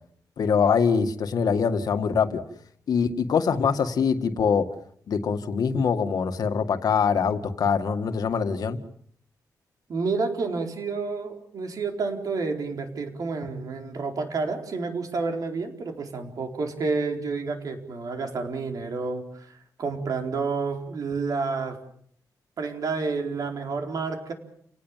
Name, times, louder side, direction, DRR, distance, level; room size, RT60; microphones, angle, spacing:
voice 1, 0.4-2.4 2.9-4.7 5.1-8.8, left 6 dB, 70° left, 8 dB, 2.1 m, -23 dB
voice 2, 9.9-21.8 22.6-24.3, right 4 dB, 60° right, 4 dB, 4.4 m, -29 dB
29.5 x 18.5 x 7.6 m, 0.66 s
wide cardioid pair, 130°, 7 cm